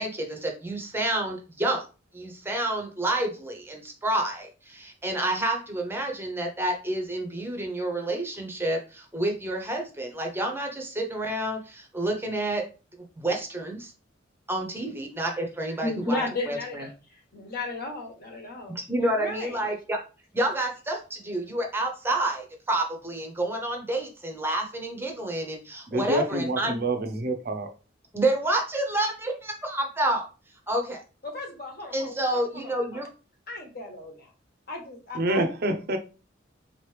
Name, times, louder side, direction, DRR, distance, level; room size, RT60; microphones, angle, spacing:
voice 1, 0.0-1.8 2.1-12.6 13.2-13.9 14.5-16.2 16.5-16.8 18.7-20.0 20.3-26.8 28.1-30.3 30.7-31.0 31.9-33.1, right 1 dB, 10° right, 0.7 m, -29 dB
voice 2, 15.8-19.6 31.2-33.0 33.5-34.3 34.7-35.5, left 2 dB, 50° left, 1.2 m, -35 dB
voice 3, 25.9-27.7 35.1-36.0, right 1 dB, 50° right, 0.6 m, -27 dB
4.0 x 3.0 x 3.2 m
head